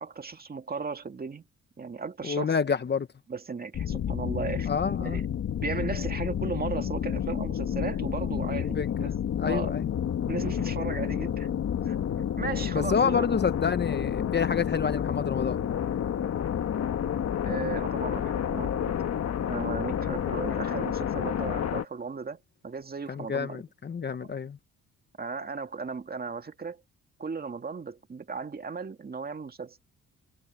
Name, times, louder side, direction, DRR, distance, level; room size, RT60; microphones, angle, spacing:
voice 1, 0.0-1.4 1.8-2.5 3.3-4.7 5.0-5.3 5.6-9.1 9.5-9.7 10.3-11.5 11.9-13.3 17.5-19.0 19.5-22.4 22.6-23.6 24.2-24.3 25.2-26.8 27.2-29.8, right 5 dB, 30° right, 2.0 m, -36 dB
voice 2, 2.2-3.1 4.7-5.2 8.6-8.9 9.4-9.9 12.7-15.6 23.1-24.6, left 6 dB, 35° left, 1.1 m, -28 dB
sound 1, 3.7-21.9, left 9 dB, 55° left, 1.6 m, -30 dB
cardioid pair, 90°, 30 cm